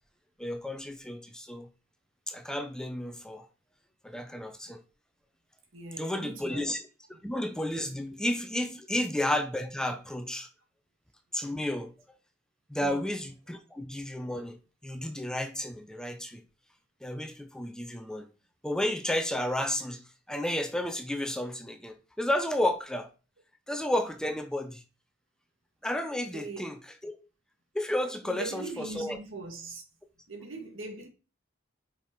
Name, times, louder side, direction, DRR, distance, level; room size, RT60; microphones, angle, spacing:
voice 1, 0.4-1.7 2.3-3.5 4.0-4.8 6.0-6.8 7.2-10.5 11.3-11.9 12.7-16.4 17.0-18.3 18.6-23.1 23.7-24.8 25.8-26.7 27.0-27.2 27.7-29.2, left 1 dB, 5° left, 0.6 m, -32 dB
voice 2, 5.7-6.7 11.5-11.7 12.8-13.1 26.3-26.7 28.2-29.8 30.3-31.1, right 3 dB, 80° right, 1.6 m, -41 dB
5.3 x 5.1 x 4.5 m
head